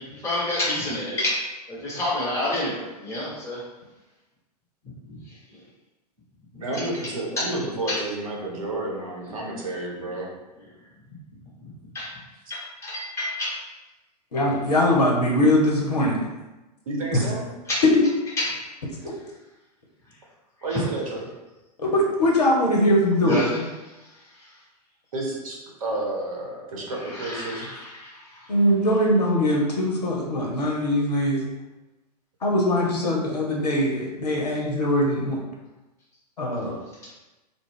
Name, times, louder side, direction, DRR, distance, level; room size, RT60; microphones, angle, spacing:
voice 1, 0.0-1.3 1.7-3.6 7.4-7.5 7.9-8.0 11.9-12.1 12.5-13.5 17.7-17.8 18.4-18.5 20.7-20.8 23.2-23.6 27.1-28.4, left 1 dB, 15° left, -8 dB, 1.1 m, -28 dB
voice 2, 6.6-10.3 16.9-17.5 20.6-21.3 25.1-27.7, right 2 dB, 55° right, -2 dB, 0.8 m, -30 dB
voice 3, 14.3-16.2 17.1-17.2 17.8-18.0 19.0-19.1 21.8-23.4 28.5-31.4 32.4-35.4 36.4-36.8, left 1 dB, 70° left, -2 dB, 0.7 m, -21 dB
2.3 x 2.0 x 3.4 m, 1.1 s
figure-of-eight pair, 100°, 21 cm